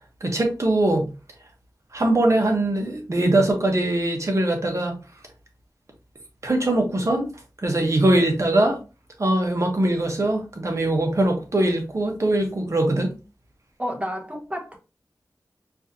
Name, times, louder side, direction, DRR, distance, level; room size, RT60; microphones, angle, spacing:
voice 1, 0.2-1.1 1.9-5.0 6.4-7.3 7.6-8.8 9.2-13.1, right 1 dB, 45° right, 1.1 m, -21 dB
voice 2, 13.8-14.8, equal, 20° right, 1.1 m, -30 dB
4.6 x 2.7 x 2.8 m
wide cardioid pair, 90°, 7 cm